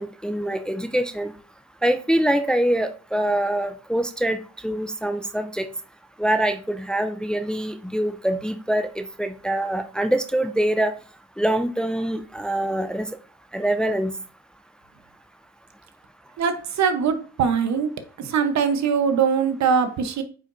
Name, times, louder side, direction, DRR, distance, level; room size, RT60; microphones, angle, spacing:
voice 1, 0.0-1.3 1.8-5.7 6.2-10.9 11.4-13.1 13.5-14.1, right 1 dB, 5° left, 8 dB, 0.5 m, -24 dB
voice 2, 16.4-17.9 18.2-20.2, right 6 dB, 65° right, 8 dB, 1.0 m, -22 dB
8.6 x 4.6 x 2.7 m, 0.39 s
cardioid pair, 90°, 30 cm